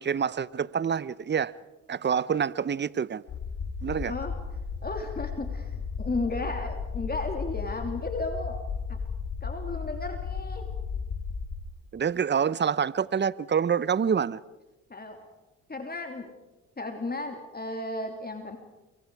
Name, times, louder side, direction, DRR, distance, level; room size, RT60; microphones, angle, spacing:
voice 1, 0.0-1.5 1.9-3.2 3.8-4.1 11.9-14.4, right 7 dB, 30° right, 0.8 m, -27 dB
sound 1, 3.3-11.6, left 5 dB, 65° left, 3.2 m, -34 dB
voice 2, 4.8-8.6 8.9-9.0 9.4-10.7 14.9-15.3 15.7-16.3 16.8-18.6, left 2 dB, 25° left, 3.0 m, -34 dB
28.5 x 23.5 x 4.8 m
supercardioid pair, 55°, 34 cm